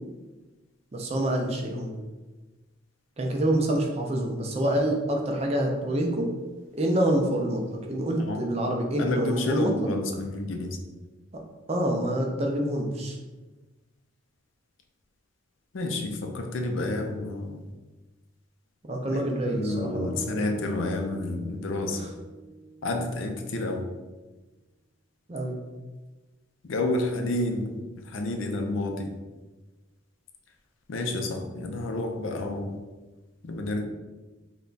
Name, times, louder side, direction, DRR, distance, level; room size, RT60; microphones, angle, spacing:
voice 1, 0.9-1.9 3.2-6.3 6.7-9.9 11.3-11.4 11.7-13.2 18.8-20.2 21.9-22.1 25.3-25.6, right 1 dB, 30° right, 1 dB, 0.4 m, -27 dB
voice 2, 9.0-10.8 15.7-17.7 19.1-22.0 22.8-23.8 26.6-29.1 30.9-32.8 33.4-33.8, left 2 dB, 70° left, 4 dB, 0.5 m, -30 dB
sound 1, 19.7-23.9, right 1 dB, 30° left, 0.8 m, -42 dB
3.3 x 2.2 x 3.9 m, 1.2 s
head